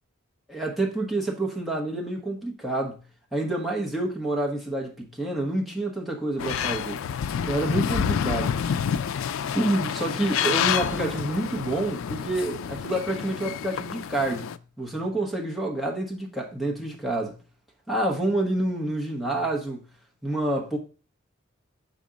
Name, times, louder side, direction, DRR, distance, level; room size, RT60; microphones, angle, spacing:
voice 1, 0.5-3.0 3.3-7.0 7.5-8.5 9.5-17.4 17.9-19.8 20.2-20.8, right 1 dB, ahead, 1.2 m, -28 dB
sound 1, 6.4-14.6, left 8 dB, 80° left, 0.3 m, -28 dB
5.2 x 4.2 x 5.1 m
head